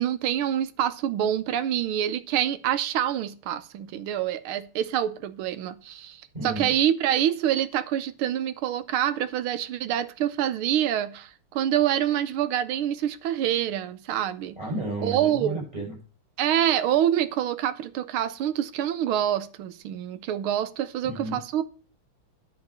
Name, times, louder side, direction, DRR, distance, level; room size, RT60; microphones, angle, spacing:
voice 1, 0.0-14.6 15.0-15.6 16.4-21.6, right 11 dB, 80° right, 1.6 m, -26 dB
voice 2, 6.3-6.7 14.6-15.9 21.0-21.4, right 2 dB, 15° right, 6.4 m, -32 dB
10.5 x 5.2 x 6.8 m
omnidirectional pair, 2.4 m